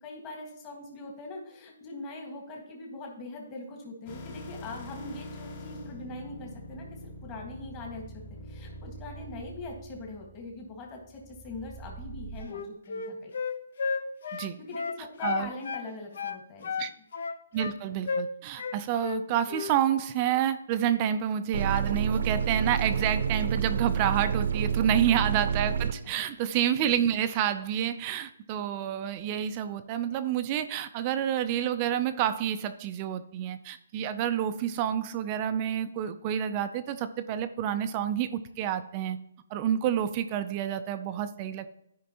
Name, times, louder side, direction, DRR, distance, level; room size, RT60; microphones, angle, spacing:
voice 1, 0.0-13.3 14.2-16.8 24.9-25.0 26.0-26.1, left 2 dB, 20° left, 0 dB, 1.6 m, -42 dB
sound 1, 4.1-12.4, equal, 35° left, 1.8 m, -44 dB
Wind instrument woodwind instrument, 12.4-15.9 16.1-17.8 18.1-18.3 18.6-19.2 19.5-19.7, left 5 dB, 60° left, 0.7 m, -32 dB
voice 2, 17.5-39.2 39.5-41.7, right 10 dB, 25° right, 10 dB, 0.4 m, -29 dB
sound 2, 21.5-25.9, right 7 dB, 70° right, 0.7 m, -28 dB
13.0 x 5.1 x 2.9 m, 0.76 s
hypercardioid pair, 165°, 0 cm